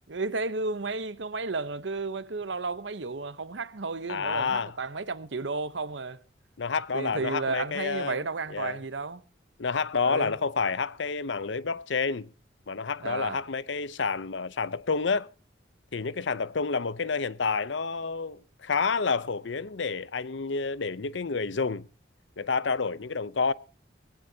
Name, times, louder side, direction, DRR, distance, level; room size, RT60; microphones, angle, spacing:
voice 1, 0.1-6.2 6.9-9.2 10.0-10.3 13.0-13.4, right 3 dB, 75° right, 1.0 m, -33 dB
voice 2, 4.1-4.8 6.6-8.2 8.5-8.8 9.6-12.3 12.7-15.3 15.9-21.9 22.4-23.5, left 4 dB, 80° left, 0.7 m, -29 dB
19.5 x 17.0 x 2.8 m
head